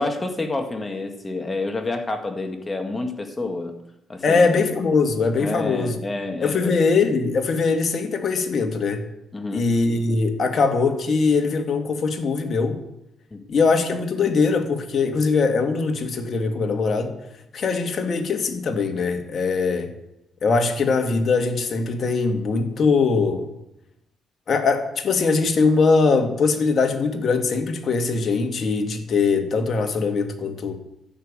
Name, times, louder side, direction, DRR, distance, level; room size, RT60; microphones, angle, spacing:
voice 1, 0.0-3.7 4.1-4.4 5.4-6.7 9.3-9.7 13.3-13.4, left 2 dB, 25° left, 5 dB, 1.8 m, -28 dB
voice 2, 4.2-6.0 6.4-9.0 9.5-12.8 13.5-17.2 17.5-19.9 20.4-23.5 24.5-30.8, left 4 dB, 50° left, 4 dB, 2.1 m, -21 dB
12.5 x 7.0 x 8.9 m, 0.86 s
cardioid pair, 90°, 0 cm